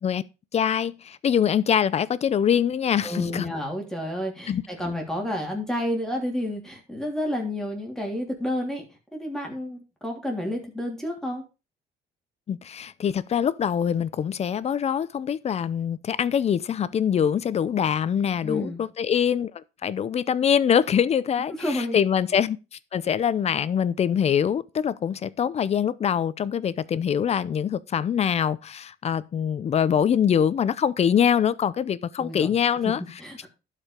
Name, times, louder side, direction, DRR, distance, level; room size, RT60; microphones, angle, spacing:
voice 1, 0.5-3.5 4.5-4.6 12.5-22.6 22.9-33.0, left 8 dB, 40° left, 0.6 m, -24 dB
voice 2, 3.0-8.8 9.1-11.4 18.4-18.8 21.6-22.0 32.2-32.5 33.2-33.5, left 1 dB, 5° left, 3.2 m, -30 dB
12.0 x 5.1 x 5.1 m
cardioid pair, 110°, 17 cm